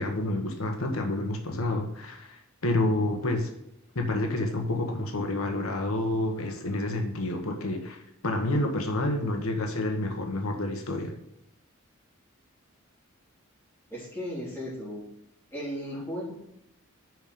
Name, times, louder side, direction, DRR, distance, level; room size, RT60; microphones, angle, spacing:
voice 1, 0.0-3.5 3.9-11.2, left 2 dB, 90° left, 3 dB, 1.2 m, -29 dB
voice 2, 13.9-15.0 15.5-16.3, equal, 10° left, -6 dB, 3.2 m, -35 dB
6.2 x 5.1 x 6.8 m, 0.82 s
head